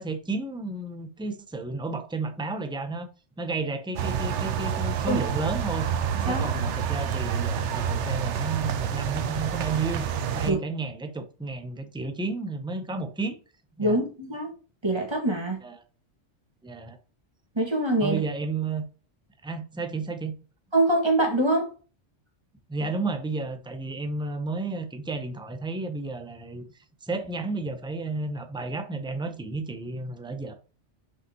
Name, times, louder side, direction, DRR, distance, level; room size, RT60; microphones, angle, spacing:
voice 1, 0.0-3.1 3.4-5.9 6.2-10.1 10.3-13.4 13.8-14.0 15.6-15.8 16.6-17.0 18.0-18.8 19.4-20.4 22.7-26.6 27.0-30.5, right 3 dB, 5° right, 0.6 m, -32 dB
sound 1, 4.0-10.5, right 8 dB, 75° right, 1.0 m, -28 dB
voice 2, 13.8-14.5 14.8-15.6 17.6-18.2 20.7-21.7, right 1 dB, 20° right, 2.0 m, -24 dB
6.3 x 5.1 x 3.0 m
omnidirectional pair, 1.2 m